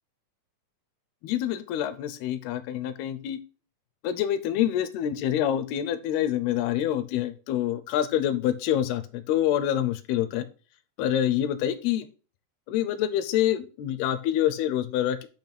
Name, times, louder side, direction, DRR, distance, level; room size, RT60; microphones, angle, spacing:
voice 1, 1.2-3.4 4.0-10.5 11.0-12.1 12.7-15.3, left 11 dB, 80° left, 11 dB, 2.5 m, -26 dB
8.8 x 3.0 x 5.9 m, 0.35 s
omnidirectional pair, 4.7 m